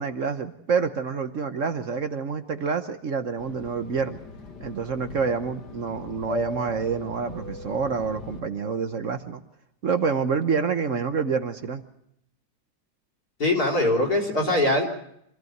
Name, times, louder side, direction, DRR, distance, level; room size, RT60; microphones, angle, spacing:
voice 1, 0.0-4.2 4.6-9.4 9.8-11.8, right 5 dB, 55° right, 8 dB, 1.3 m, -27 dB
Fixed-wing aircraft airplane, 3.4-8.4, left 3 dB, 85° left, 2.7 m, -38 dB
voice 2, 13.4-14.9, left 1 dB, 60° left, 3 dB, 4.2 m, -22 dB
25.0 x 15.0 x 7.9 m, 0.77 s
omnidirectional pair, 1.8 m